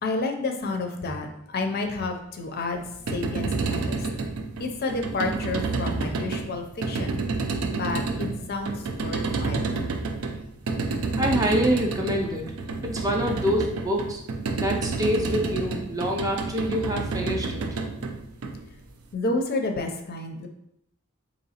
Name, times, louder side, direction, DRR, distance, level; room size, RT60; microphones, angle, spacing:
voice 1, 0.0-1.3 1.5-2.8 3.1-4.1 4.6-7.2 7.7-9.7 19.1-20.5, left 3 dB, 45° left, 4 dB, 0.4 m, -30 dB
sound 1, 2.8-19.0, right 3 dB, 90° right, 0.4 m, -29 dB
voice 2, 11.2-12.5 12.8-14.2 14.6-17.6, equal, 15° right, 1 dB, 0.4 m, -26 dB
3.8 x 2.9 x 2.8 m, 0.77 s
head